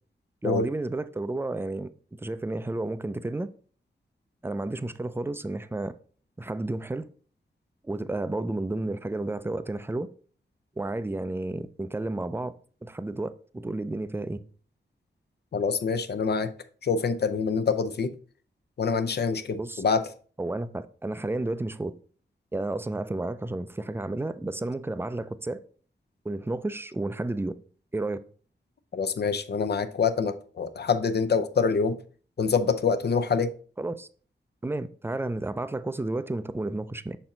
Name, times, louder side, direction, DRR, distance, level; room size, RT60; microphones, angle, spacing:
voice 1, 0.4-3.5 4.4-5.9 6.4-7.1 7.8-10.1 10.8-12.5 12.8-14.4 19.6-19.8 20.4-21.9 22.5-25.6 26.2-27.5 27.9-28.2 33.8-34.1 34.6-37.2, right 2 dB, 10° right, 0.4 m, -31 dB
voice 2, 15.5-16.5 16.8-18.1 18.8-20.1 28.9-32.0 32.4-33.5, left 5 dB, 60° left, 0.6 m, -25 dB
5.8 x 4.3 x 3.8 m
wide cardioid pair, 70°, 19 cm